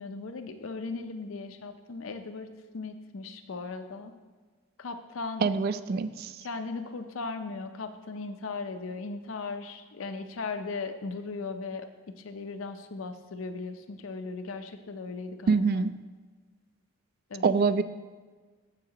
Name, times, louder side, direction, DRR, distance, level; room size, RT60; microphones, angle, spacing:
voice 1, 0.0-2.5 2.7-4.1 4.8-5.4 6.4-11.9 12.2-15.8 17.3-17.5, left 4 dB, 90° left, 8 dB, 0.6 m, -37 dB
voice 2, 5.4-6.3 15.5-15.9 17.4-17.8, right 4 dB, 50° right, 13 dB, 0.3 m, -25 dB
13.5 x 4.8 x 2.9 m, 1.4 s
head